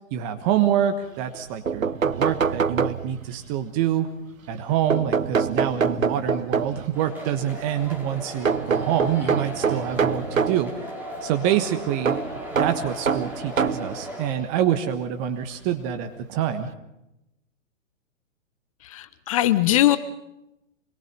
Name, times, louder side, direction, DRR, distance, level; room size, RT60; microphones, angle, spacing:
voice 1, 0.1-4.1 4.5-10.7 11.2-12.2 12.6-16.7, right 10 dB, 25° right, 8 dB, 1.3 m, -26 dB
sound 1, 1.3-1.4 1.7-3.4 4.9-7.0 8.5-10.7 12.1-13.9 14.8-14.9 16.2-16.3 16.6-16.7, right 6 dB, 80° right, 0.9 m, -24 dB
sound 2, 6.9-14.3, equal, 5° right, 4.1 m, -37 dB
voice 2, 18.8-20.0, left 14 dB, 25° left, 13 dB, 0.7 m, -20 dB
25.5 x 22.0 x 5.4 m, 0.89 s
figure-of-eight pair, 125°, 39 cm